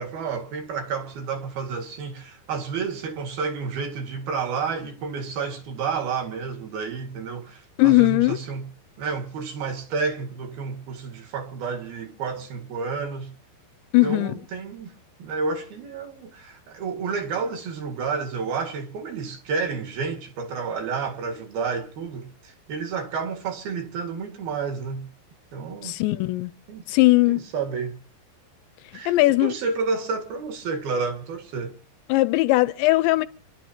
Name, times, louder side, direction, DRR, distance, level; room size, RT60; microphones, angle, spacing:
voice 1, 0.0-8.7 9.0-13.3 14.0-14.9 15.2-25.1 25.5-25.9 26.7-26.9 27.3-28.0 28.9-29.1 29.4-31.8, right 5 dB, 60° right, 3.7 m, -30 dB
voice 2, 7.8-8.4 13.9-14.3 25.8-26.5 26.9-27.4 29.1-29.5 32.1-33.3, left 20 dB, 85° left, 3.1 m, -19 dB
27.5 x 12.0 x 2.9 m
omnidirectional pair, 5.1 m